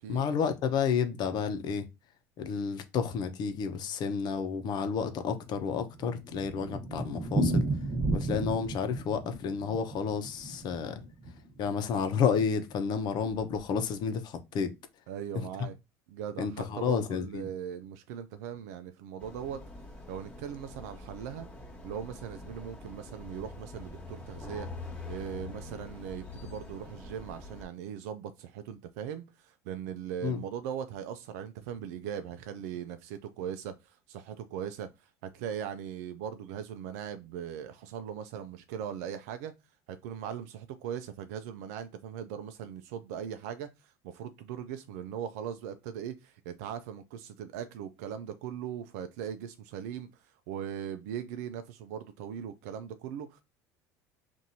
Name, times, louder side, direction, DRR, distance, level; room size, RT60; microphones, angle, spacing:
voice 1, 0.1-1.9 2.4-7.7 8.1-11.0 11.6-14.7 15.3-15.5 16.4-17.4 30.2-30.4, left 6 dB, 55° left, 0.8 m, -31 dB
Thunder, 5.4-11.7 12.0-12.1 12.4-12.5 12.7-12.8 13.4-13.7, right 2 dB, 40° right, 1.3 m, -33 dB
voice 2, 15.1-15.7 16.1-19.6 20.1-21.5 21.8-39.5 39.9-53.4, right 9 dB, 80° right, 0.4 m, -39 dB
sound 1, 19.2-27.6, left 3 dB, 15° left, 1.4 m, -45 dB
5.8 x 2.6 x 2.7 m
supercardioid pair, 90°, 9 cm